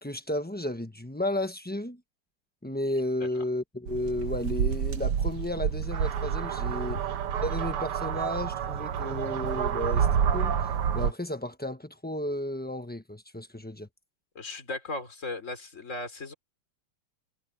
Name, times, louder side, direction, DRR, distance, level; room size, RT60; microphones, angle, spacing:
voice 1, 0.0-2.0 2.6-7.0 7.4-10.1 10.3-10.5 10.9-13.9, left 1 dB, 10° left, 0.7 m, -33 dB
sound 1, 3.9-11.1, right 8 dB, 85° right, 2.1 m, -28 dB
voice 2, 14.4-16.3, left 2 dB, 35° left, 3.9 m, -37 dB
omnidirectional pair, 2.4 m